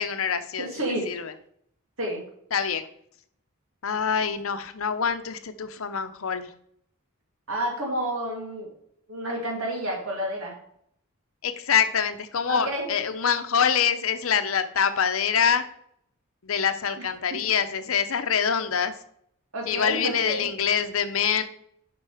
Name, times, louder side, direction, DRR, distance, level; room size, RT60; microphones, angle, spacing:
voice 1, 0.0-0.7 1.1-1.3 2.5-2.9 3.8-6.5 11.4-15.6 16.4-18.9 19.7-21.4, left 7 dB, 75° left, 10 dB, 0.7 m, -25 dB
voice 2, 0.6-1.1 2.0-2.2 7.5-8.7 9.1-10.5 12.5-12.9 17.0-17.1 19.5-20.5, right 1 dB, 75° right, 0 dB, 2.5 m, -29 dB
7.6 x 5.4 x 4.9 m, 0.68 s
head